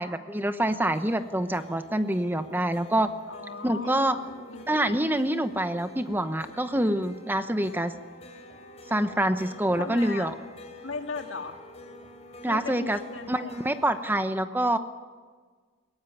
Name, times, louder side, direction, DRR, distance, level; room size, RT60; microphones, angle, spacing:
voice 1, 0.0-3.1 3.6-4.1 4.7-7.9 8.9-10.3 12.4-13.0 13.3-14.8, right 1 dB, 10° right, 9 dB, 0.9 m, -26 dB
sound 1, 0.6-14.1, left 2 dB, 35° left, 3.6 m, -49 dB
voice 2, 3.3-4.9 9.8-10.3 10.8-11.6 12.4-13.6, left 3 dB, 80° left, 5 dB, 2.2 m, -37 dB
21.5 x 18.0 x 9.3 m, 1.5 s
head